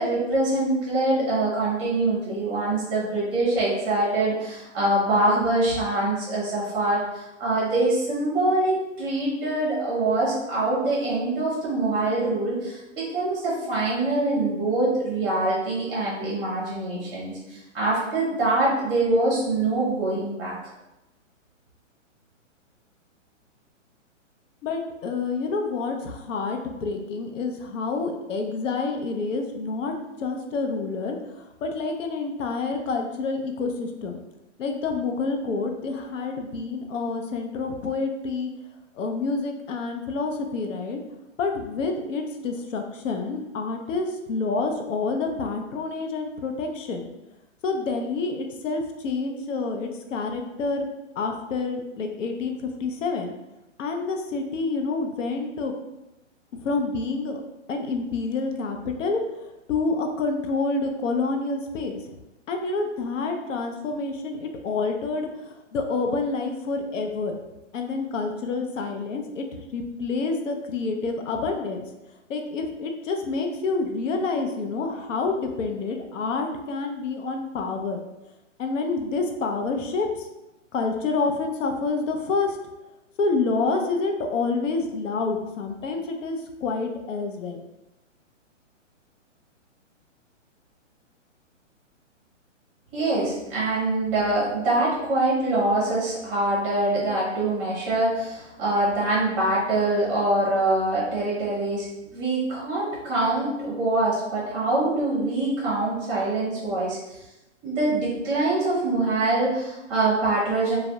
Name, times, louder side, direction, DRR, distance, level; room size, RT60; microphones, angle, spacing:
voice 1, 0.0-20.5 92.9-107.2 107.6-110.8, right 2 dB, 25° right, -6 dB, 0.6 m, -24 dB
voice 2, 24.6-29.9 30.2-34.2 34.6-38.5 38.9-41.0 41.4-47.1 47.6-50.9 51.2-53.3 53.8-55.7 56.6-57.4 57.7-59.2 59.7-62.0 62.5-67.3 67.7-71.8 72.3-78.0 78.6-80.3 80.7-82.6 83.2-87.6, left 3 dB, 80° left, 4 dB, 0.5 m, -28 dB
2.2 x 2.0 x 2.7 m, 0.96 s
hypercardioid pair, 165°, 38 cm